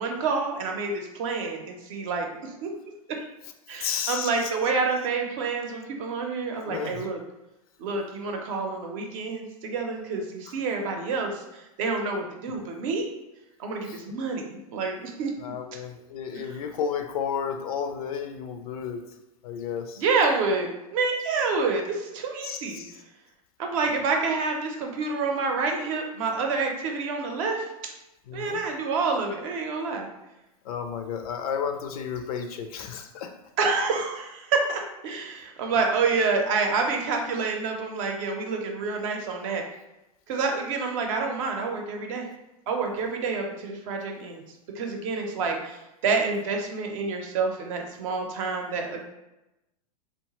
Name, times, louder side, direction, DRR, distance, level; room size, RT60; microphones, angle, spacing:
voice 1, 0.0-2.7 3.7-7.2 7.8-13.1 13.6-15.3 16.3-16.4 20.0-22.8 23.6-27.7 28.3-30.1 33.6-39.6 40.3-42.3 42.7-44.4 44.7-49.0, right 4 dB, 60° right, 2 dB, 0.6 m, -28 dB
voice 2, 3.8-4.5 6.7-7.1 12.5-12.6 13.9-14.0 15.4-19.0 19.4-20.0 22.4-22.9 28.3-28.6 30.6-33.3, left 7 dB, 70° left, 6 dB, 0.4 m, -32 dB
2.8 x 2.2 x 2.9 m, 0.96 s
hypercardioid pair, 120°, 19 cm